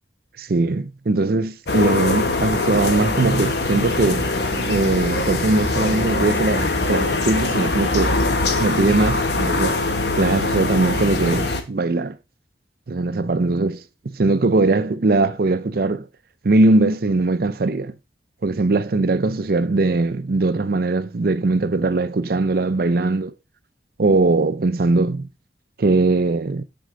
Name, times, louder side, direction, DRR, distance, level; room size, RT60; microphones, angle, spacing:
voice 1, 0.4-4.3 4.6-8.2 8.6-9.8 10.2-12.2 12.9-16.1 16.4-17.9 18.4-23.3 24.0-25.3 25.8-26.6, right 2 dB, 55° right, 0.5 m, -20 dB
sound 1, 1.7-11.6, left 2 dB, 65° left, 1.2 m, -22 dB
7.9 x 6.2 x 3.8 m
head